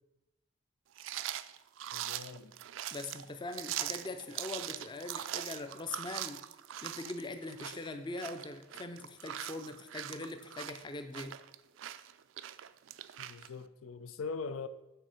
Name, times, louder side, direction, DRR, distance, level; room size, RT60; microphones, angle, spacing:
sound 1, 0.9-13.5, right 12 dB, 70° right, 0.3 m, -42 dB
voice 1, 1.9-2.5 13.2-14.7, left 4 dB, 85° left, 0.5 m, -41 dB
voice 2, 2.9-6.4 6.8-11.4, left 2 dB, 20° left, 0.4 m, -42 dB
6.8 x 4.3 x 6.3 m
head